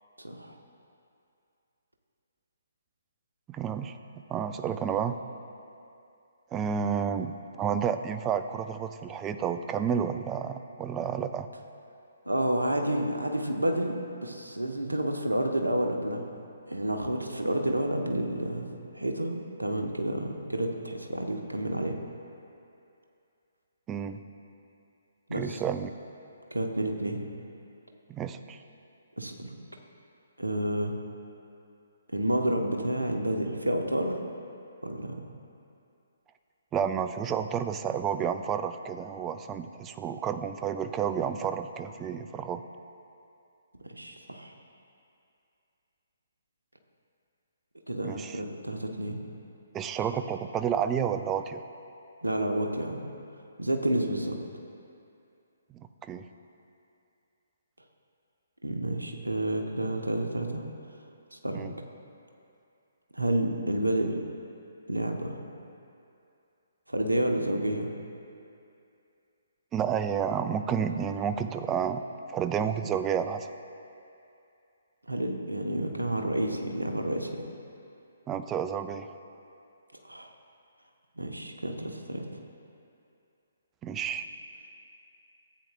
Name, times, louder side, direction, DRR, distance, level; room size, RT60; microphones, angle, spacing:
voice 1, 0.2-0.6 12.3-14.0 14.2-16.3 16.7-22.0 25.3-25.6 26.5-27.2 29.2-29.5 30.4-30.9 32.1-34.2 34.8-35.3 43.8-44.5 47.9-49.2 52.2-53.0 53.6-54.4 58.6-60.6 61.3-61.6 63.1-64.2 64.9-65.4 66.9-67.9 75.1-77.4 80.0-80.3 81.2-82.2, right 1 dB, 80° right, 3 dB, 0.9 m, -30 dB
voice 2, 3.5-4.0 4.3-5.2 6.5-11.5 23.9-24.2 25.3-25.9 28.1-28.6 36.7-42.6 48.0-48.4 49.7-51.6 55.7-56.3 61.5-61.7 69.7-72.0 72.3-73.5 78.3-79.1 83.8-84.3, right 7 dB, 15° right, 9 dB, 0.3 m, -30 dB
14.5 x 8.3 x 2.2 m, 2.6 s
figure-of-eight pair, 135°, 0 cm